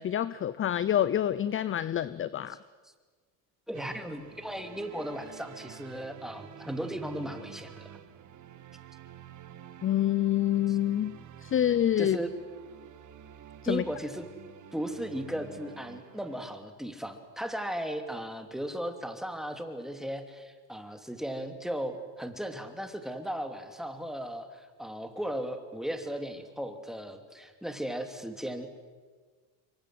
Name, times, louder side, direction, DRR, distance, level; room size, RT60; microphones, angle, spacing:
voice 1, 0.0-2.6 9.8-11.1 11.4-12.2 13.6-13.8, left 11 dB, 30° left, 17 dB, 0.7 m, -27 dB
voice 2, 3.7-7.9 10.7-10.8 12.0-12.3 13.7-14.2 14.7-28.8, equal, ahead, 6 dB, 2.8 m, -36 dB
sound 1, 3.7-16.6, right 9 dB, 40° right, 1.8 m, -49 dB
26.0 x 23.5 x 7.8 m, 1.5 s
supercardioid pair, 100°, 43 cm